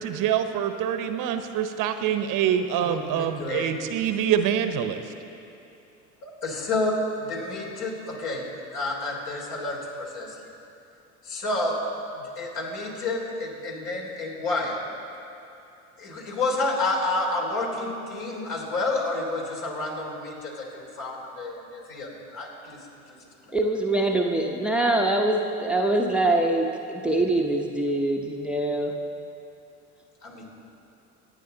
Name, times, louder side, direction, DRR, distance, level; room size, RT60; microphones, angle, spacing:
voice 1, 0.0-5.0, right 9 dB, 45° right, 8 dB, 0.9 m, -25 dB
voice 2, 2.8-3.7 6.2-10.3 11.3-11.8 12.4-14.8 16.0-22.8 30.2-30.4, left 2 dB, 60° left, -1 dB, 3.7 m, -30 dB
voice 3, 23.5-29.0, right 2 dB, ahead, 2 dB, 0.8 m, -24 dB
24.5 x 9.6 x 3.9 m, 2.8 s
hypercardioid pair, 75°, 44 cm